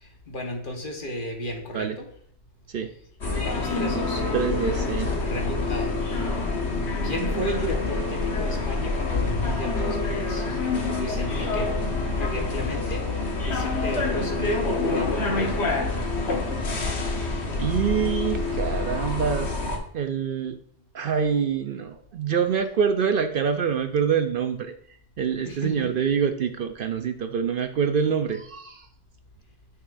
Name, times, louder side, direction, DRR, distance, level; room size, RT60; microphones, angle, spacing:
voice 1, 0.0-2.1 3.4-4.4 5.2-6.0 7.0-10.4 10.9-11.7 12.2-13.0 13.4-15.6 25.4-25.9, equal, 50° left, 2 dB, 1.3 m, -33 dB
sound 1, 3.2-19.8, left 3 dB, 75° left, 1.5 m, -27 dB
voice 2, 4.3-5.1 17.3-19.6 19.9-20.6 20.9-24.7 25.2-28.9, right 7 dB, 60° right, 7 dB, 0.7 m, -25 dB
9.4 x 6.0 x 2.5 m, 0.62 s
omnidirectional pair, 1.1 m